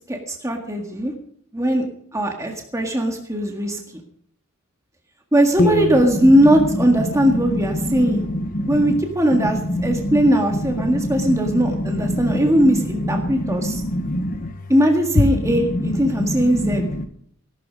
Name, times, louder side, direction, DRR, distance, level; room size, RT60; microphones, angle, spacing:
voice 1, 0.1-1.1 1.5-1.9 2.1-3.8 5.3-8.3 8.7-13.8 14.7-16.9, equal, 15° right, 2 dB, 1.7 m, -19 dB
voice 2, 9.7-10.2 10.9-11.6 11.9-12.2 13.2-14.5 16.2-16.3 16.8-17.0, left 1 dB, 40° left, 6 dB, 1.0 m, -24 dB
17.5 x 12.5 x 5.2 m, 0.66 s
head